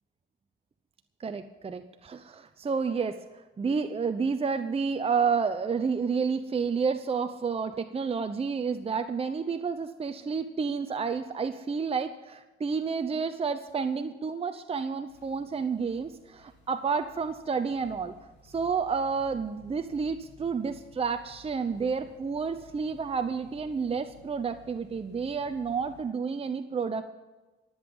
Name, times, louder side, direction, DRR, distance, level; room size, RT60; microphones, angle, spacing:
voice 1, 1.2-3.2 3.6-18.2 18.4-27.1, right 5 dB, 30° right, 9 dB, 0.8 m, -30 dB
sound 1, 15.1-26.1, left 3 dB, 70° left, 5.2 m, -56 dB
21.5 x 8.0 x 5.4 m, 1.2 s
cardioid pair, 90°, 20 cm